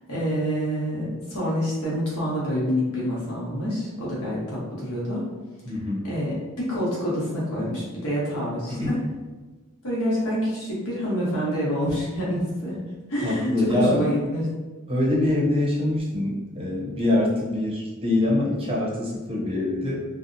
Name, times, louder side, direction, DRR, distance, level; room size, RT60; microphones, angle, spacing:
voice 1, 0.1-5.2 6.0-9.0 9.8-12.8 13.1-14.5, equal, 80° left, -6 dB, 1.0 m, -27 dB
voice 2, 5.6-6.1 8.8-9.0 13.2-14.0 14.9-20.0, left 1 dB, 25° right, -5 dB, 0.6 m, -24 dB
2.7 x 2.1 x 2.5 m, 1.3 s
head